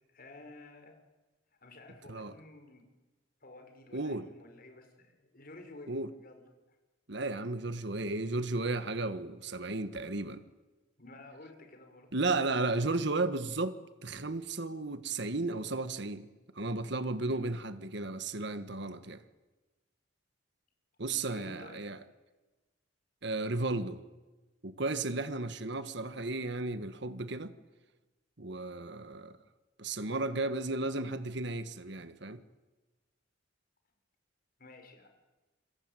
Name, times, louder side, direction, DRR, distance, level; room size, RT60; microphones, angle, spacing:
voice 1, 0.1-1.0 1.6-2.9 3.4-6.4 11.0-12.1 21.3-21.8 34.6-35.1, left 2 dB, 50° left, 5.9 m, -52 dB
voice 2, 3.9-4.3 5.9-6.1 7.1-10.4 12.1-16.3 16.5-19.2 21.0-22.0 23.2-24.0 24.6-27.5 28.4-29.4 29.8-32.4, right 2 dB, 65° right, 1.6 m, -34 dB
28.5 x 22.5 x 9.2 m
head